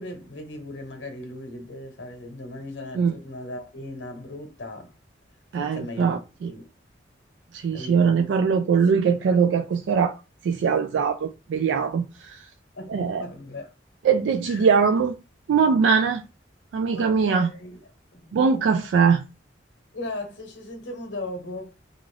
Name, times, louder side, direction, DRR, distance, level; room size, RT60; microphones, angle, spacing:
voice 1, 0.0-4.9 5.6-6.2 6.5-6.6 7.7-9.4 12.7-13.7 14.5-14.7 16.9-17.8 18.1-18.3 19.9-21.7, left 2 dB, 80° left, 0.9 m, -38 dB
voice 2, 5.5-6.5 7.5-10.2 10.4-12.5 12.9-13.2 14.0-15.1 15.5-16.2 16.7-17.5 18.3-19.3, right 6 dB, 85° right, 0.3 m, -21 dB
2.5 x 2.3 x 3.2 m
head